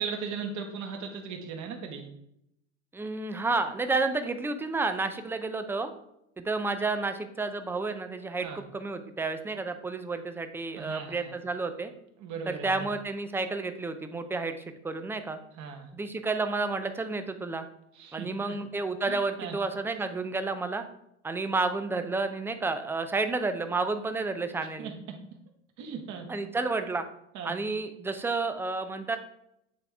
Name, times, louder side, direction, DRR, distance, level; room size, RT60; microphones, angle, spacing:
voice 1, 0.0-2.1 8.4-8.6 10.7-11.3 12.2-12.9 15.6-15.9 17.9-18.5 19.1-19.5 24.8-25.2 25.8-26.3 27.3-27.5, right 6 dB, 50° right, 4 dB, 1.4 m, -38 dB
voice 2, 2.9-5.9 6.4-11.9 12.5-15.4 15.9-17.6 18.1-20.8 21.2-24.9 26.3-27.1 27.4-29.2, right 3 dB, 5° right, 8 dB, 0.4 m, -31 dB
8.3 x 3.4 x 3.4 m, 0.79 s
supercardioid pair, 110°, 37 cm